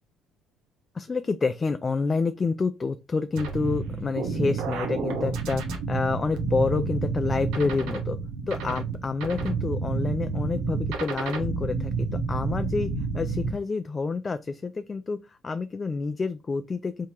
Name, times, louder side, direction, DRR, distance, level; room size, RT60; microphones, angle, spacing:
voice 1, 0.9-8.2 8.5-11.9 12.3-15.2 15.4-17.1, left 4 dB, 30° left, 0.4 m, -28 dB
sound 1, 3.4-13.5, right 4 dB, 80° right, 1.1 m, -30 dB
3.6 x 2.8 x 4.5 m
supercardioid pair, 85°, 0 cm